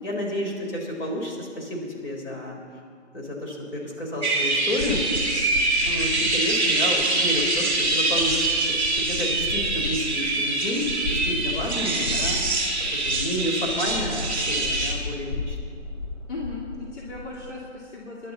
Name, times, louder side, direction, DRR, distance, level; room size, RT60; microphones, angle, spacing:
voice 1, 0.0-2.6 3.1-5.0 5.8-15.7, left 1 dB, 45° left, -1 dB, 4.4 m, -30 dB
sound 1, 4.2-14.9, right 2 dB, 5° left, 1.7 m, -24 dB
sound 2, 4.8-17.7, left 3 dB, 80° left, 1.6 m, -35 dB
voice 2, 16.3-18.3, left 3 dB, 65° left, -3 dB, 2.4 m, -36 dB
22.5 x 11.5 x 4.2 m, 2.1 s
hypercardioid pair, 170°, 37 cm